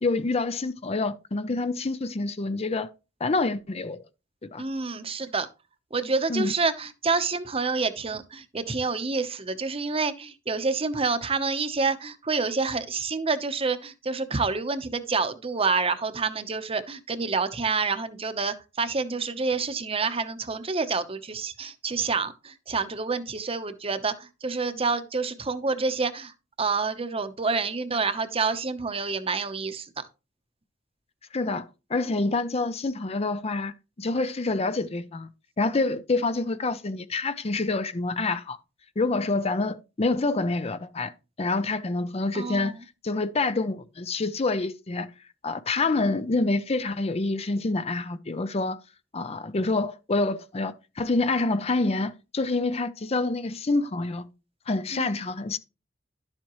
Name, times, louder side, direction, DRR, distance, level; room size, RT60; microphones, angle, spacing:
voice 1, 0.0-2.9 3.2-4.0 4.4-4.6 6.3-6.5 31.3-33.7 34.0-35.3 35.6-38.6 39.0-41.1 41.4-42.7 43.0-45.1 45.4-48.8 49.1-54.3 54.7-55.6, left 3 dB, 35° left, 0.6 m, -27 dB
voice 2, 4.6-5.5 5.9-26.3 26.6-30.0 42.3-42.7 54.9-55.1, right 4 dB, 30° right, 0.9 m, -28 dB
11.5 x 7.4 x 3.1 m
head